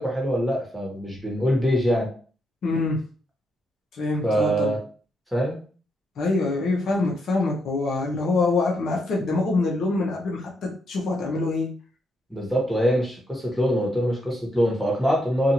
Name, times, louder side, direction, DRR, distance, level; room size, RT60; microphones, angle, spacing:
voice 1, 0.0-2.1 4.2-4.8 5.3-5.6 12.3-15.5, equal, ahead, -2 dB, 1.3 m, -23 dB
voice 2, 2.6-3.0 3.9-4.7 6.2-11.7, left 3 dB, 65° left, -2 dB, 0.8 m, -25 dB
2.6 x 2.5 x 2.9 m, 0.40 s
cardioid pair, 90°, 0 cm